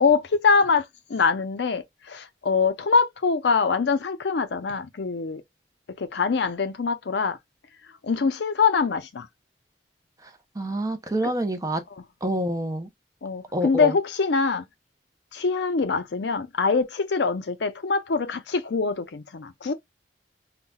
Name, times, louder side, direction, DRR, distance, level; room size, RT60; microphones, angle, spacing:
voice 1, 0.0-5.4 6.0-7.4 8.0-9.3 11.2-11.3 11.9-12.0 13.2-14.6 15.3-19.7, left 5 dB, 65° left, 0.5 m, -24 dB
voice 2, 10.6-11.8 12.2-12.9 13.5-13.9, right 1 dB, 20° right, 0.5 m, -27 dB
5.5 x 2.2 x 2.2 m
head